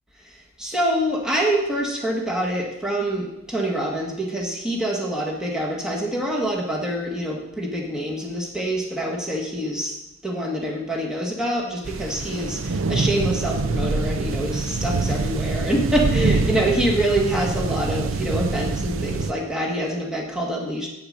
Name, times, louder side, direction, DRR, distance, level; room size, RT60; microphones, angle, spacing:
voice 1, 0.2-9.9 10.2-20.9, right 1 dB, 5° right, -2 dB, 1.6 m, -25 dB
sound 1, 11.8-19.3, right 3 dB, 75° right, 0.6 m, -25 dB
8.9 x 8.7 x 6.6 m, 0.90 s
head